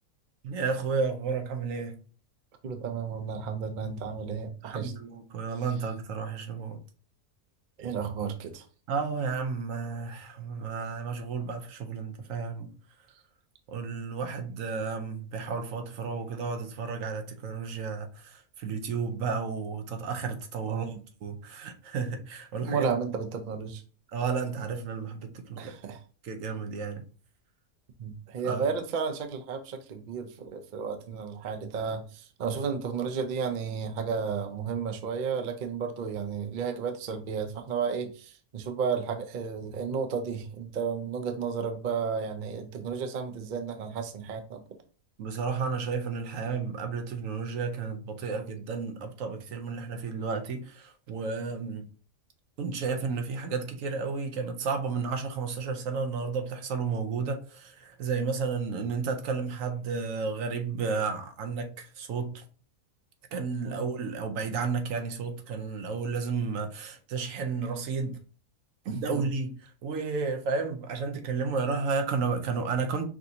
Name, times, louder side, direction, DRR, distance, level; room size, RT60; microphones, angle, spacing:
voice 1, 0.4-2.0 4.6-6.8 8.9-12.7 13.7-20.9 21.2-22.9 24.1-25.7 26.2-27.0 28.4-28.7 45.2-51.9 52.6-62.4 63.3-68.2 68.9-73.1, right 5 dB, 70° right, 1.1 m, -32 dB
voice 2, 2.6-4.9 7.8-8.6 20.7-21.0 22.6-23.8 25.6-26.0 28.0-44.6 63.6-63.8 68.9-69.3, right 6 dB, 55° right, 0.5 m, -33 dB
5.8 x 2.7 x 2.8 m
omnidirectional pair, 1.5 m